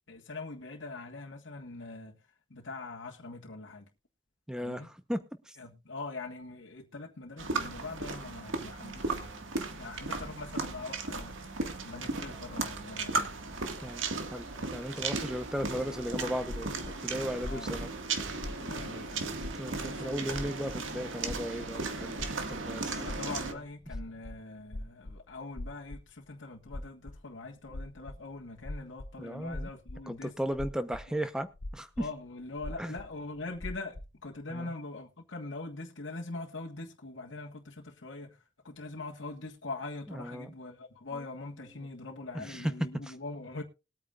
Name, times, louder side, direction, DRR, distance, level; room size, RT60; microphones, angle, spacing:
voice 1, 0.1-2.2 2.5-3.8 4.6-4.9 5.6-11.3 11.8-13.3 17.5-17.7 18.5-19.5 19.9-20.4 22.9-30.3 31.1-31.2 32.0-43.6, left 3 dB, 80° left, 1.6 m, -43 dB
voice 2, 4.5-5.2 5.5-5.6 13.8-14.0 14.3-14.4 14.7-16.8 17.0-17.9 19.6-23.0 29.2-29.7 30.1-31.5 31.7-31.9 32.8-32.9 34.5-34.7 40.2-40.5 42.3-42.7 43.1-43.2, equal, 5° right, 0.9 m, -36 dB
sound 1, 7.4-23.5, right 3 dB, 90° right, 1.9 m, -36 dB
sound 2, 16.4-19.0 19.3-20.0 20.3-20.8 21.2-21.7 22.1-26.3 26.7-27.3 27.6-29.2 29.5-31.1 31.5-32.2 32.5-34.1, left 1 dB, 55° left, 0.8 m, -42 dB
21.0 x 9.0 x 2.5 m
head